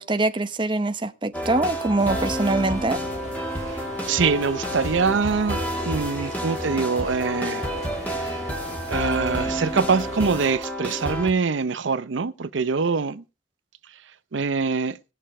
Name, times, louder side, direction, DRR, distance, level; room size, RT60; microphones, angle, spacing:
voice 1, 0.0-3.0, right 2 dB, 25° right, 0.8 m, -23 dB
sound 1, 1.3-11.3, equal, 10° left, 2.3 m, -30 dB
sound 2, 2.0-10.6, left 1 dB, 40° left, 2.9 m, -38 dB
voice 2, 4.1-5.6 5.9-7.7 8.1-8.4 8.9-13.2 14.3-15.0, right 5 dB, 80° right, 0.6 m, -24 dB
18.5 x 6.6 x 4.3 m
head